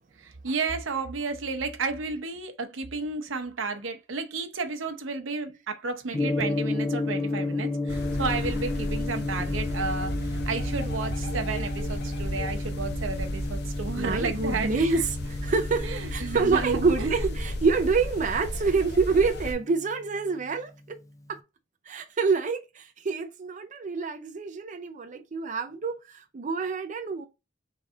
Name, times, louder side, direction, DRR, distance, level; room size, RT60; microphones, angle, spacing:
voice 1, 0.2-15.0 15.8-17.3, right 4 dB, 85° right, 0.8 m, -32 dB
Gong, 6.1-20.3, left 2 dB, 15° left, 0.4 m, -33 dB
sound 1, 7.9-19.5, equal, 60° left, 0.9 m, -33 dB
voice 2, 14.0-21.0 21.3-21.4 21.9-27.3, right 4 dB, 40° right, 0.5 m, -27 dB
3.9 x 3.3 x 3.7 m
head